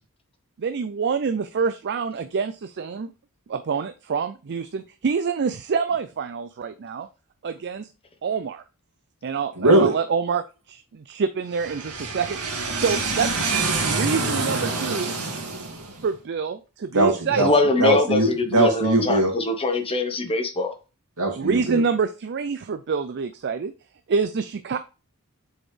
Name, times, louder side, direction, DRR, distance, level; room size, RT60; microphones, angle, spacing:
voice 1, 0.6-3.1 3.5-7.1 7.4-7.9 8.2-8.6 9.2-12.4 12.7-13.5 13.8-15.1 16.0-17.5 21.4-23.7 24.1-24.8, right 5 dB, 50° right, 0.4 m, -26 dB
voice 2, 9.6-9.9 11.8-16.0 16.9-17.5 17.8-19.3 21.2-21.8, right 2 dB, 80° right, 2.3 m, -22 dB
voice 3, 17.3-20.7, left 2 dB, 25° left, 0.9 m, -23 dB
7.6 x 4.3 x 3.3 m
head